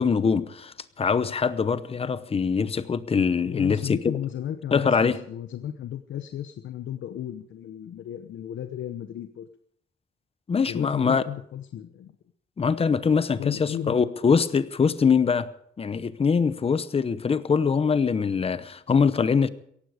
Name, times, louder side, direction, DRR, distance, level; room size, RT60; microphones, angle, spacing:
voice 1, 0.0-4.1 4.7-5.2 10.5-11.2 12.6-15.5 15.8-19.5, left 5 dB, 30° left, 0.8 m, -23 dB
voice 2, 3.4-9.5 10.7-12.1 13.4-14.1, left 10 dB, 90° left, 1.0 m, -34 dB
17.5 x 15.0 x 5.0 m
wide cardioid pair, 150°, 19 cm